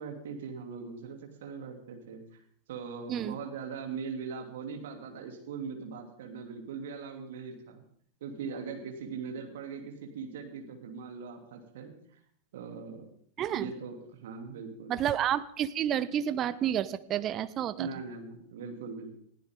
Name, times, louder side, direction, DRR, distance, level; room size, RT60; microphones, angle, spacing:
voice 1, 0.0-2.4 2.7-7.8 8.2-11.9 12.5-13.0 13.5-15.0 17.7-19.2, right 5 dB, 55° right, 3 dB, 2.9 m, -40 dB
voice 2, 13.4-13.7 14.9-17.9, right 10 dB, 30° right, 14 dB, 0.8 m, -30 dB
21.0 x 15.0 x 3.8 m, 0.63 s
figure-of-eight pair, 90°, 0 cm